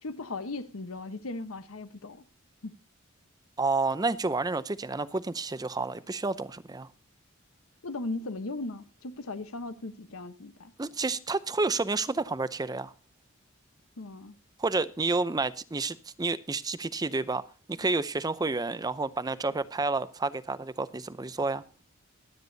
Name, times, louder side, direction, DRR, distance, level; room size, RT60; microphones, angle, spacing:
voice 1, 0.0-2.2 2.6-2.7 7.8-10.7 14.0-14.4, left 2 dB, 80° left, 1.0 m, -37 dB
voice 2, 3.6-6.9 10.8-12.9 14.6-17.4 17.7-21.6, right 3 dB, 20° right, 0.5 m, -30 dB
24.0 x 8.7 x 2.7 m
head